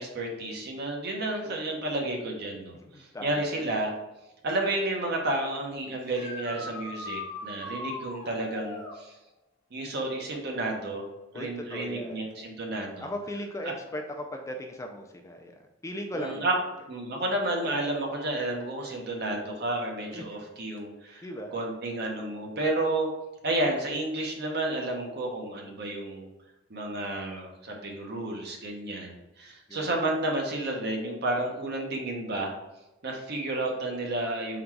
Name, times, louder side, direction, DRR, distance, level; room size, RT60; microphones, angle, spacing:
voice 1, 0.0-3.9 4.4-9.1 9.7-11.1 11.3-13.1 13.6-13.7 16.1-16.5 16.9-21.2 21.5-23.1 23.4-26.3 26.7-32.5 33.0-34.6, right 2 dB, 55° right, 1 dB, 0.8 m, -31 dB
voice 2, 2.8-3.5 11.3-12.2 13.0-15.5 15.8-16.5 17.7-17.8 20.1-20.2 21.2-21.5 29.7-30.0, equal, 15° left, 3 dB, 0.3 m, -37 dB
sound 1, 6.0-9.0 12.3-12.4 14.4-14.5 20.8-20.9, left 2 dB, 45° left, 0.9 m, -39 dB
3.9 x 2.3 x 4.5 m, 0.97 s
head